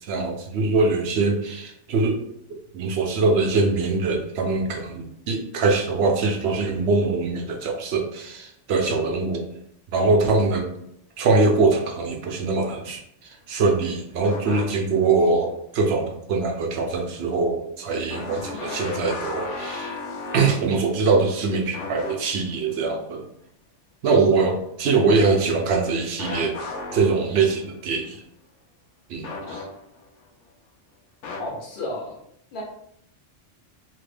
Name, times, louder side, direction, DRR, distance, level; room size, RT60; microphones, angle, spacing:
voice 1, 0.1-2.2 2.5-9.5 9.9-10.7 11.2-20.0 20.3-23.3 24.0-26.6 26.9-28.2 29.1-29.6, right 3 dB, 65° right, 3 dB, 0.8 m, -23 dB
sound 1, 14.2-15.1 15.5-15.6 18.1-21.3 21.7-22.6 26.2-27.7 29.2-30.1 31.2-31.5, left 3 dB, 75° left, 0.9 m, -34 dB
voice 2, 31.4-32.2 32.5-32.6, left 1 dB, 50° left, -2 dB, 0.9 m, -32 dB
2.8 x 2.5 x 3.2 m, 0.74 s
omnidirectional pair, 1.3 m